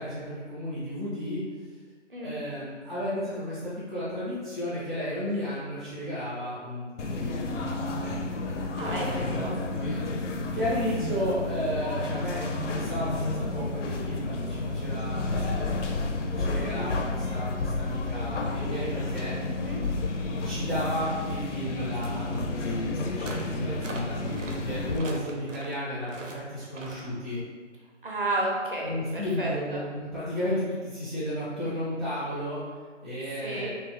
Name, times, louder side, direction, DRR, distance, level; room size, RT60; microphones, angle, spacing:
voice 1, 0.0-1.4 2.2-8.2 8.8-9.3 10.5-16.0 16.4-19.3 20.4-27.4 28.8-32.6 33.0-33.7, equal, ahead, -14 dB, 0.5 m, -33 dB
sound 1, 7.0-25.0, left 2 dB, 70° left, 0.5 m, -31 dB
voice 2, 8.8-10.1 19.5-19.8 28.0-29.8 33.4-33.7, right 2 dB, 45° right, -2 dB, 0.6 m, -32 dB
sound 2, 23.2-23.5 23.8-24.6 24.9-25.8 26.1-26.4 26.7-27.0, right 2 dB, 80° right, 0.7 m, -41 dB
3.0 x 2.3 x 3.3 m, 1.5 s
figure-of-eight pair, 170°, 37 cm